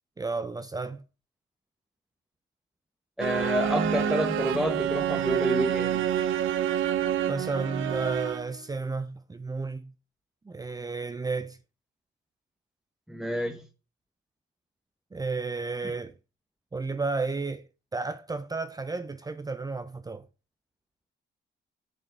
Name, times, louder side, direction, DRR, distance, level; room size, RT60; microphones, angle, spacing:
voice 1, 0.2-1.0 7.3-9.9 10.5-11.6 15.1-16.1 16.7-17.6 17.9-20.3, right 3 dB, 20° right, 0.6 m, -32 dB
voice 2, 3.2-6.1 13.1-13.7, equal, ahead, 1.1 m, -28 dB
sound 1, 3.2-8.6, right 10 dB, 80° right, 0.9 m, -28 dB
7.3 x 6.9 x 4.6 m
cardioid pair, 90°, 20 cm